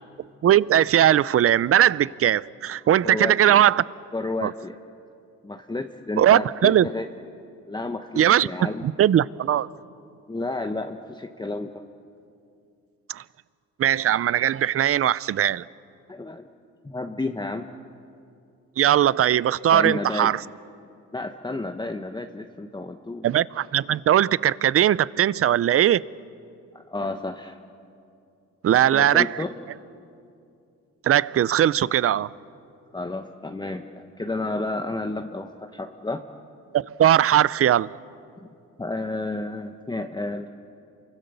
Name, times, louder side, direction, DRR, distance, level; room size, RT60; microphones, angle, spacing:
voice 1, 0.4-3.8 4.4-4.5 6.2-6.9 8.2-8.5 8.8-9.7 13.1-13.2 13.8-15.7 18.8-20.4 23.2-26.0 28.6-29.4 31.0-32.3 36.7-37.9, right 11 dB, 50° right, 0.6 m, -19 dB
voice 2, 3.0-3.6 4.1-4.8 5.4-7.1 7.7-8.8 10.3-11.8 16.1-16.5 16.8-17.7 19.7-20.4 21.1-23.3 26.7-27.6 28.7-29.5 32.9-36.2 38.8-40.5, left 2 dB, 15° left, 1.1 m, -31 dB
29.0 x 24.0 x 6.9 m
cardioid pair, 90°, 30 cm